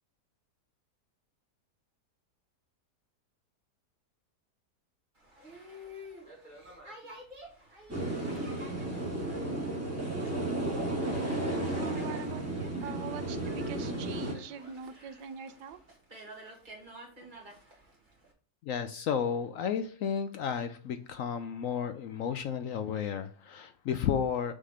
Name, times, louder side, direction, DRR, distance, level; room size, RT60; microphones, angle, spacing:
Boat Water vehicle, 5.2-18.3, equal, 30° right, 2.0 m, -51 dB
sound 1, 7.9-14.3, right 1 dB, 10° right, 1.8 m, -33 dB
voice 1, 11.3-15.8, right 7 dB, 85° right, 11 dB, 1.3 m, -43 dB
voice 2, 18.6-24.5, left 7 dB, 70° left, 10 dB, 0.8 m, -32 dB
6.5 x 3.8 x 6.2 m, 0.43 s
omnidirectional pair, 1.8 m